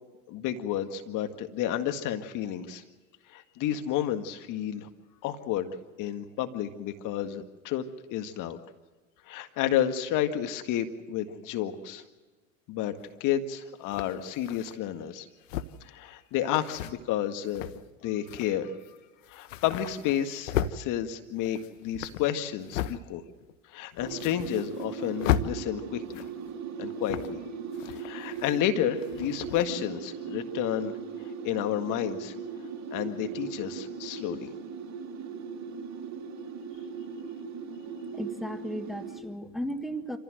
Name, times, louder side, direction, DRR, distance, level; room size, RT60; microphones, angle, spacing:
voice 1, 0.3-2.8 3.3-4.9 5.2-5.7 6.0-7.8 8.1-8.6 9.3-12.0 12.7-15.3 15.8-17.7 18.0-18.7 19.3-23.2 23.7-26.2 26.8-27.4 27.9-30.9 31.2-32.3 32.9-34.5, left 11 dB, 50° left, 7 dB, 1.9 m, -31 dB
sound 1, 13.0-13.1 13.9-14.8 15.4-15.9 16.5-16.9 17.4-17.9 18.3-18.5 18.8-19.0 19.2-20.8 21.3-23.0 23.4-23.5 23.9-24.9 25.2-25.5 26.0-26.5 27.0-27.4 27.7-28.7 29.0-29.7, left 10 dB, 75° left, 1.1 m, -34 dB
sound 2, 24.0-39.2, right 5 dB, 45° right, 3.7 m, -38 dB
voice 2, 38.1-40.2, equal, ahead, 7 dB, 1.8 m, -35 dB
26.5 x 15.5 x 7.8 m, 1.3 s
hypercardioid pair, 85°, 39 cm